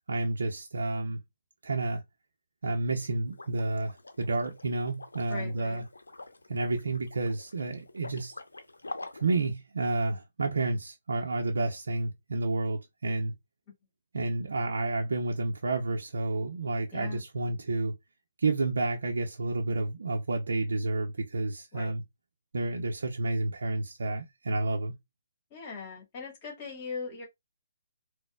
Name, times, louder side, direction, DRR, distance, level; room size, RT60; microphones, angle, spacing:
voice 1, 0.1-1.2 1.6-2.0 2.6-5.8 6.5-8.3 9.1-13.3 14.1-18.0 18.4-22.0 22.5-24.9, right 2 dB, 70° right, 0.6 m, -30 dB
Liquid, 3.3-9.4, left 2 dB, 90° left, 0.7 m, -46 dB
voice 2, 5.3-5.8 16.9-17.2 21.7-21.9 25.5-27.3, left 5 dB, 35° left, 1.3 m, -40 dB
4.0 x 2.1 x 2.2 m
figure-of-eight pair, 140°, 0 cm